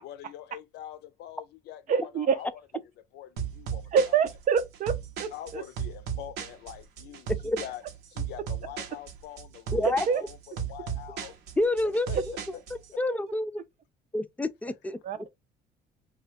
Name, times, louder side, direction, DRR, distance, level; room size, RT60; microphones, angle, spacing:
voice 1, 0.0-4.2 5.3-7.3 7.6-7.8 8.1-11.3 11.8-12.2 12.9-13.0, left 12 dB, 80° left, 0.5 m, -44 dB
voice 2, 1.9-2.4 3.9-5.6 10.1-10.2 15.0-15.3, right 6 dB, 50° right, 0.6 m, -26 dB
sound 1, 3.4-12.9, right 8 dB, 80° right, 0.8 m, -36 dB
voice 3, 9.7-10.1 11.6-12.3 13.0-13.6 14.1-15.0, left 1 dB, 10° left, 0.3 m, -28 dB
2.7 x 2.3 x 3.1 m
cardioid pair, 110°, 17 cm